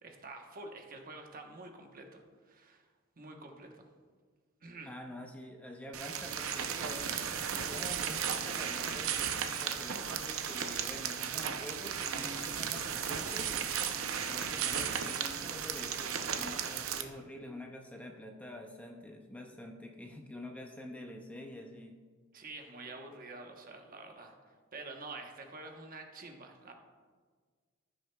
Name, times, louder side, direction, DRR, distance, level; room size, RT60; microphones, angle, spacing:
voice 1, 0.0-2.9 3.2-3.9 4.6-4.9 22.3-26.7, right 3 dB, 45° right, 3 dB, 1.0 m, -48 dB
voice 2, 4.9-9.2 9.6-13.5 14.1-22.0, left 1 dB, 5° left, 2 dB, 0.5 m, -47 dB
sound 1, 5.9-17.0, right 8 dB, 85° right, 0.6 m, -35 dB
14.5 x 6.4 x 2.3 m, 1.5 s
head